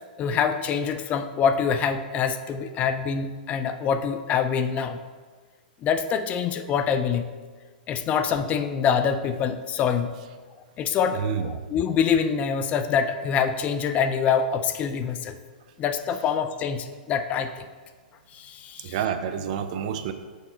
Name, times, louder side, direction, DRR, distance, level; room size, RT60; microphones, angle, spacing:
voice 1, 0.2-5.0 5.8-7.3 7.9-10.1 10.8-15.4 15.8-17.6 18.3-19.0, left 7 dB, 30° left, 10 dB, 0.4 m, -25 dB
voice 2, 11.1-11.5 18.8-20.1, right 8 dB, 50° right, 10 dB, 0.5 m, -28 dB
6.6 x 5.4 x 4.3 m, 1.5 s
hypercardioid pair, 115°, 5 cm